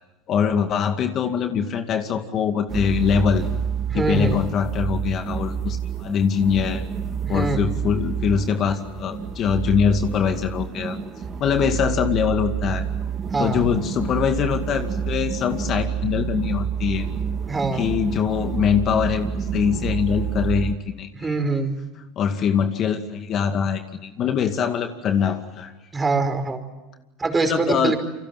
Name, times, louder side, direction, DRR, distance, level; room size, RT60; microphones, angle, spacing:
voice 1, 0.3-3.5 3.9-6.8 7.3-11.0 11.4-12.8 13.4-17.1 17.7-21.3 22.2-25.7 27.4-27.9, left 7 dB, 45° left, 6 dB, 2.2 m, -23 dB
sound 1, 2.7-20.7, right 7 dB, 35° right, 3.4 m, -28 dB
voice 2, 3.9-4.4 7.3-7.7 13.3-13.7 17.5-17.9 21.2-21.8 25.9-26.6 27.2-28.0, right 3 dB, 15° right, 7 dB, 4.9 m, -23 dB
29.0 x 25.0 x 7.6 m, 1.0 s
hypercardioid pair, 100°, 0 cm